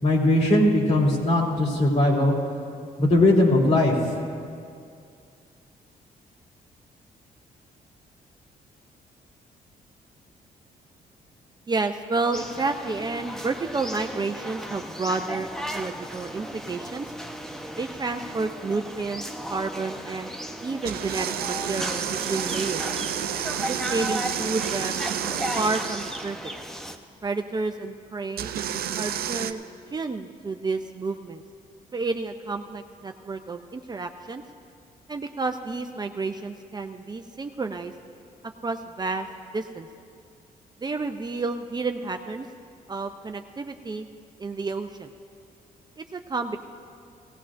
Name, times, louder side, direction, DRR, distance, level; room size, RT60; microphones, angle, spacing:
voice 1, 0.0-2.3 3.0-4.1, left 1 dB, 45° left, -2 dB, 3.2 m, -20 dB
voice 2, 11.7-17.1 17.8-19.2 19.5-20.3 20.6-22.9 23.7-25.0 25.5-26.5 27.2-28.5 29.0-29.6 29.9-31.4 31.9-34.4 35.1-37.9 38.6-39.3 39.5-39.9 40.8-42.5 42.9-44.1 44.4-45.1 46.0-46.6, right 3 dB, 25° right, 6 dB, 0.5 m, -30 dB
sound 1, 12.3-27.0, equal, 5° left, 0.8 m, -35 dB
sound 2, 20.8-26.3 28.4-29.5, right 10 dB, 75° right, 0.6 m, -30 dB
18.0 x 16.5 x 2.5 m, 2.3 s
cardioid pair, 95°, 16 cm